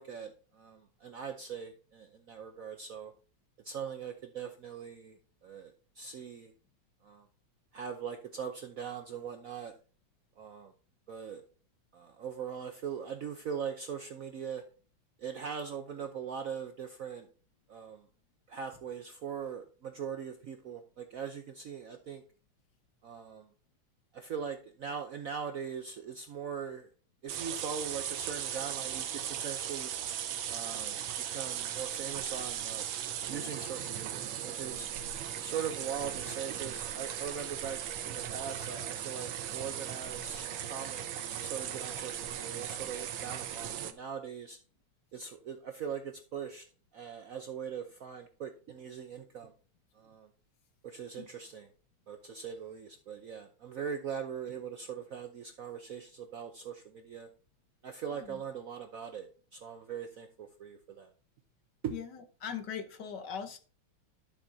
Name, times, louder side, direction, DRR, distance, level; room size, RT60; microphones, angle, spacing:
voice 1, 0.0-3.1 3.6-6.5 7.0-7.3 7.7-9.7 10.4-10.7 11.1-11.4 11.9-14.6 15.2-17.3 17.7-18.0 18.5-22.2 23.0-23.5 24.1-26.9 27.2-29.9 30.5-32.9 33.3-34.9 35.4-44.6 45.1-46.6 46.9-49.5 49.9-50.3 50.8-51.7 52.1-57.3 57.8-61.1 61.8-62.0, right 7 dB, 65° right, 6 dB, 0.8 m, -41 dB
sound 1, 27.3-43.9, right 10 dB, 80° right, 1.6 m, -38 dB
voice 2, 61.9-63.6, left 7 dB, 60° left, 8 dB, 1.5 m, -40 dB
12.0 x 7.2 x 2.7 m, 0.37 s
omnidirectional pair, 2.2 m